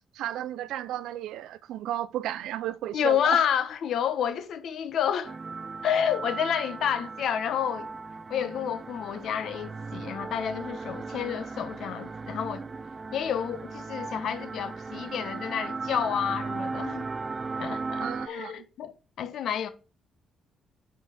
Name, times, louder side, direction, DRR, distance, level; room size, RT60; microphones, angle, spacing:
voice 1, 0.0-3.4 18.0-18.7, right 12 dB, 85° right, 0.5 m, -34 dB
voice 2, 2.9-5.3 5.8-7.9 8.3-12.6 13.1-17.1 17.6-18.9 19.2-19.7, left 9 dB, 70° left, 1.1 m, -29 dB
sound 1, 5.2-18.3, right 4 dB, 30° right, 0.3 m, -37 dB
8.2 x 4.8 x 4.3 m
cardioid pair, 90°, 0 cm